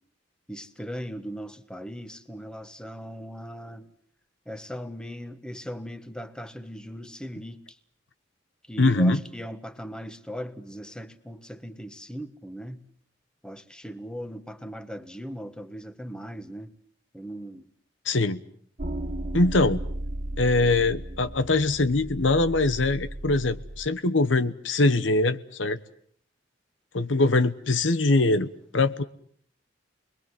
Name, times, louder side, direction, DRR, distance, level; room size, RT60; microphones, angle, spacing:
voice 1, 0.5-3.9 4.5-7.6 8.7-12.8 13.4-16.7 17.1-17.7, equal, 5° left, 10 dB, 1.4 m, -39 dB
voice 2, 8.8-9.2 18.1-18.4 19.3-19.8 20.4-25.8 26.9-29.0, left 2 dB, 90° left, 13 dB, 1.2 m, -22 dB
sound 1, 18.8-23.9, right 1 dB, 45° right, 1.4 m, -35 dB
29.5 x 21.5 x 7.7 m, 0.62 s
head